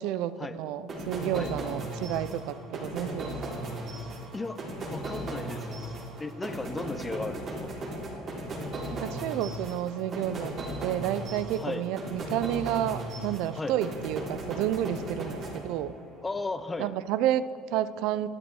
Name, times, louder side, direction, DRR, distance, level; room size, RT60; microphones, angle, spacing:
voice 1, 0.0-3.3 8.9-10.5 10.8-15.9 16.8-18.3, right 11 dB, 70° right, 14 dB, 0.4 m, -30 dB
sound 1, 0.9-16.2, right 1 dB, 45° right, 3.2 m, -37 dB
voice 2, 4.9-5.8 6.2-7.7 11.6-11.9 13.5-13.8 16.2-16.9, left 3 dB, 15° left, 12 dB, 0.6 m, -35 dB
12.5 x 9.1 x 4.7 m, 2.2 s
supercardioid pair, 110°, 0 cm